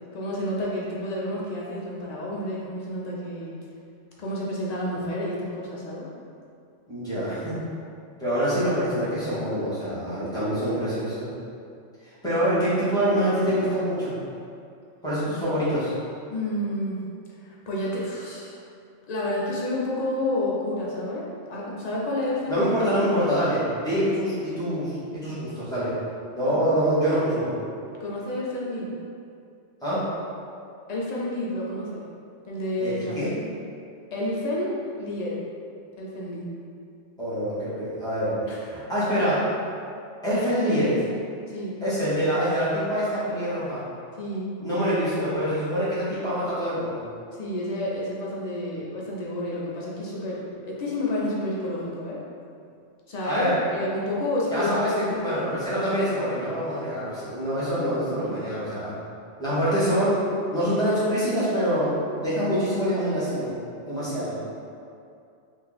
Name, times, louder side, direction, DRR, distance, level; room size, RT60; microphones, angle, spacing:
voice 1, 0.1-3.5 4.2-6.1 16.3-17.0 17.4-18.6 19.1-22.7 26.5-26.6 28.0-28.9 30.9-32.0 32.5-33.2 34.1-35.4 36.0-36.4 38.5-38.6 41.5-41.8 44.2-44.5 47.4-52.2 53.1-54.7 55.1-55.4 58.2-58.3, left 1 dB, 45° left, -5 dB, 0.5 m, -30 dB
voice 2, 6.9-7.6 8.2-11.3 12.2-14.1 15.0-15.9 22.5-25.9 26.3-27.5 29.8-30.1 32.8-33.3 37.2-39.5 40.2-41.0 41.8-43.8 44.6-47.0 53.2-53.6 54.5-58.9 59.4-60.2 60.5-63.5 63.9-64.4, equal, 5° left, -13 dB, 1.1 m, -25 dB
2.9 x 2.5 x 3.9 m, 2.4 s
omnidirectional pair, 1.2 m